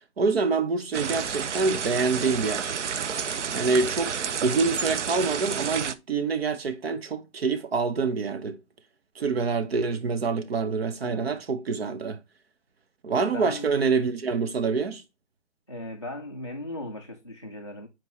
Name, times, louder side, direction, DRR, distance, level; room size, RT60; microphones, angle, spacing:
voice 1, 0.2-2.7 3.5-4.1 4.4-8.6 9.2-12.2 13.0-15.0, right 4 dB, 60° right, 1.0 m, -26 dB
sound 1, 0.9-5.9, right 7 dB, 85° right, 0.7 m, -30 dB
voice 2, 11.0-11.4 13.3-13.8 15.7-17.9, left 1 dB, 25° left, 0.3 m, -38 dB
7.3 x 4.5 x 3.1 m
hypercardioid pair, 165°, 35 cm